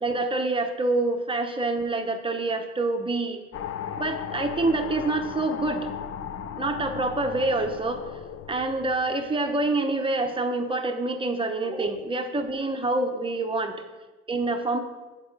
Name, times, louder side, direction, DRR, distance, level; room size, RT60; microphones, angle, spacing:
voice 1, 0.0-3.4 4.0-5.9 6.6-8.0 8.5-13.8 14.3-14.8, right 2 dB, 15° right, 5 dB, 0.8 m, -26 dB
sound 1, 3.5-10.0, left 8 dB, 50° left, 0.5 m, -36 dB
7.7 x 4.3 x 5.3 m, 1.2 s
cardioid pair, 90°, 30 cm